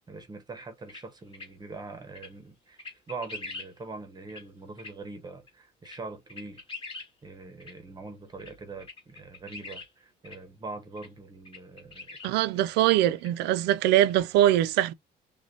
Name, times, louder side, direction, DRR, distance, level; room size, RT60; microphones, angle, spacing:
voice 1, 0.1-2.8 3.1-6.6 7.2-12.7, right 3 dB, 25° right, 0.8 m, -43 dB
sound 1, 0.9-1.0 1.3-1.5 2.2-2.3 2.8-3.7 4.3-4.4 4.8-4.9 5.5-5.6 5.8-6.0 6.3-7.1 7.6-7.7 8.4-8.5 8.8-9.9 10.2-10.4 11.0-11.1 11.5-12.3 12.9-13.0 13.2-13.3 13.6-14.2, left 3 dB, 30° left, 1.9 m, -42 dB
voice 2, 12.2-14.9, right 13 dB, 85° right, 0.4 m, -22 dB
6.1 x 2.2 x 2.7 m
cardioid pair, 110°, 17 cm